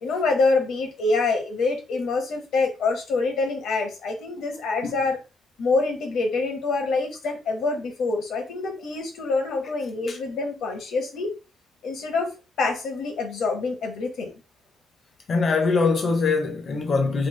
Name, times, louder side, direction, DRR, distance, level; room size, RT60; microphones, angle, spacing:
voice 1, 0.0-5.2 5.6-11.3 11.8-14.3, left 3 dB, 80° left, 1.0 m, -26 dB
voice 2, 15.3-17.3, left 4 dB, 45° left, 0.6 m, -22 dB
3.2 x 2.0 x 3.1 m
cardioid pair, 125°, 0 cm